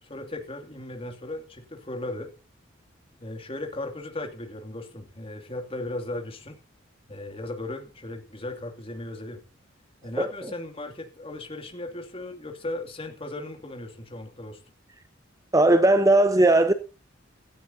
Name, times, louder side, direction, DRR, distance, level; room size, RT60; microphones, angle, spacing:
voice 1, 0.0-2.3 3.2-6.6 7.1-9.4 10.0-14.6, left 2 dB, 30° left, 2.6 m, -36 dB
voice 2, 10.2-10.5 15.5-16.7, right 2 dB, 15° right, 0.8 m, -18 dB
17.0 x 13.0 x 2.8 m
head